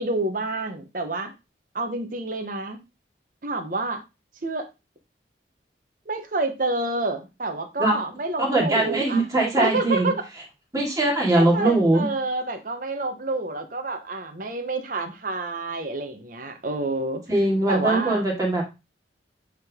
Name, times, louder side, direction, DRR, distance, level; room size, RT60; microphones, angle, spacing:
voice 1, 0.0-1.3 1.7-2.8 3.4-4.0 4.4-4.7 6.1-9.3 9.6-10.1 11.3-17.2 17.7-18.2, right 2 dB, 50° right, 1.1 m, -28 dB
voice 2, 8.4-10.1 10.7-12.1 17.3-18.6, right 2 dB, 20° right, 2.4 m, -21 dB
8.7 x 3.8 x 3.6 m
head